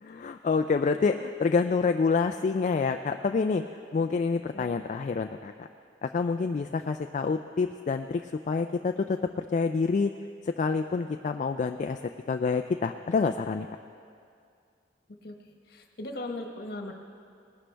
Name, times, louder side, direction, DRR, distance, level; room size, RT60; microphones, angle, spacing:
voice 1, 0.0-3.6 3.9-5.7 6.0-8.2 8.5-10.1 10.5-12.0 12.3-13.7, left 4 dB, 45° left, 7 dB, 0.3 m, -27 dB
voice 2, 15.7-16.9, left 2 dB, 60° left, 3 dB, 1.3 m, -37 dB
19.5 x 11.5 x 3.4 m, 2.3 s
head